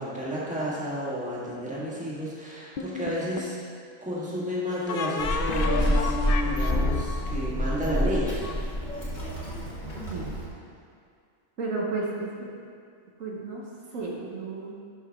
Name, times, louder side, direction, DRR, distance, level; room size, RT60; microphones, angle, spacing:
voice 1, 0.0-3.6 4.0-6.1 6.4-8.5, equal, 5° right, -8 dB, 1.6 m, -31 dB
sound 1, 2.8-3.6 4.9-8.5, left 4 dB, 60° left, 0.6 m, -31 dB
Child speech kid speaking, 5.2-10.5, equal, 35° left, 1.8 m, -28 dB
voice 2, 11.6-12.5 13.2-13.6 13.9-14.7, right 3 dB, 70° right, -3 dB, 1.4 m, -32 dB
11.5 x 5.5 x 3.6 m, 2.3 s
omnidirectional pair, 1.5 m